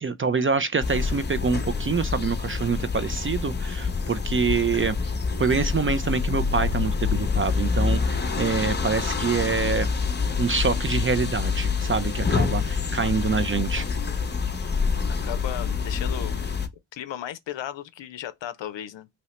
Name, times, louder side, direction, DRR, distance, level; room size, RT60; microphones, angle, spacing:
voice 1, 0.0-5.0 5.4-9.9 10.4-13.9, right 5 dB, 30° right, 0.4 m, -26 dB
sound 1, 0.8-16.7, left 5 dB, 20° left, 0.7 m, -26 dB
voice 2, 15.1-16.6 16.9-19.1, left 11 dB, 65° left, 0.6 m, -36 dB
2.9 x 2.8 x 3.1 m
supercardioid pair, 45°, 48 cm